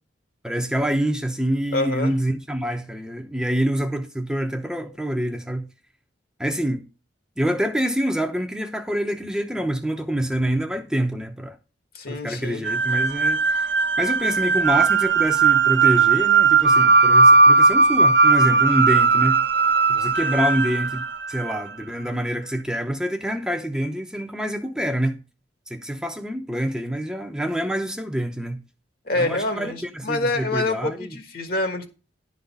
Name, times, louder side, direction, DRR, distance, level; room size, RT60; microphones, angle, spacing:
voice 1, 0.4-5.7 6.4-6.8 7.4-11.6 12.1-13.7 14.0-19.4 19.9-25.2 25.7-28.6 29.1-31.2, right 1 dB, 5° right, 0.8 m, -26 dB
voice 2, 1.7-2.1 11.9-12.6 29.0-31.9, left 2 dB, 50° left, 1.5 m, -26 dB
sound 1, 12.6-21.8, right 4 dB, 65° right, 1.1 m, -18 dB
11.0 x 4.0 x 6.9 m
head